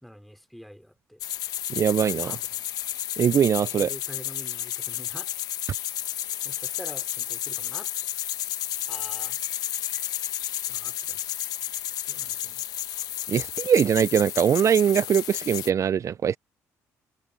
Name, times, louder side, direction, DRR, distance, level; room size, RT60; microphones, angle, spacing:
voice 1, 0.0-1.2 1.9-2.6 3.8-5.3 6.4-7.9 8.9-9.4 10.7-11.2 12.1-12.6 12.9-13.1, equal, ahead, 3.1 m, -46 dB
sound 1, 1.2-15.7, left 12 dB, 70° left, 1.2 m, -32 dB
voice 2, 1.7-2.4 3.2-3.9 13.3-16.4, right 8 dB, 50° right, 0.5 m, -22 dB
supercardioid pair, 60°, 7 cm